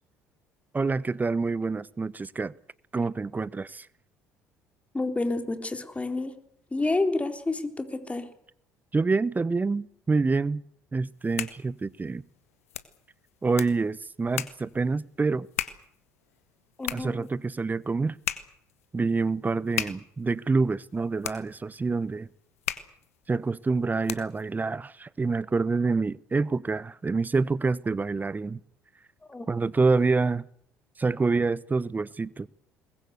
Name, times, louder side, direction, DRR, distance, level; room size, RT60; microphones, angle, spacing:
voice 1, 0.7-2.5 2.9-3.9 8.9-10.6 10.9-12.2 13.4-15.5 16.9-18.2 18.9-22.3 23.3-28.6 29.5-30.5 31.0-32.5, right 4 dB, 25° right, 0.9 m, -27 dB
voice 2, 4.9-6.4 6.7-8.3 16.8-17.2 29.3-29.5, left 2 dB, 15° left, 3.8 m, -29 dB
sound 1, 11.0-24.5, left 11 dB, 85° left, 1.2 m, -39 dB
22.5 x 20.5 x 8.2 m
hypercardioid pair, 55°, 8 cm